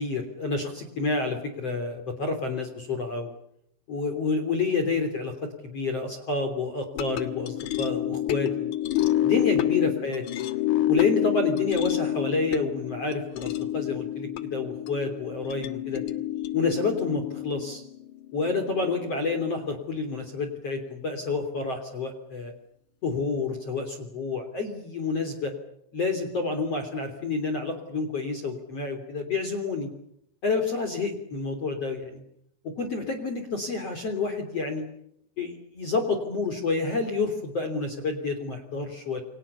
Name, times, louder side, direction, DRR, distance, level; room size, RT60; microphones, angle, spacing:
voice 1, 0.0-3.3 3.9-8.7 9.2-10.2 10.9-16.0 16.5-17.8 18.3-22.5 23.0-25.5 25.9-29.9 30.4-32.2 32.6-34.8 35.4-39.2, left 4 dB, 35° left, 5 dB, 3.7 m, -29 dB
sound 1, 6.9-19.3, left 12 dB, 75° left, 1.8 m, -28 dB
29.0 x 25.5 x 6.9 m, 0.74 s
omnidirectional pair, 5.7 m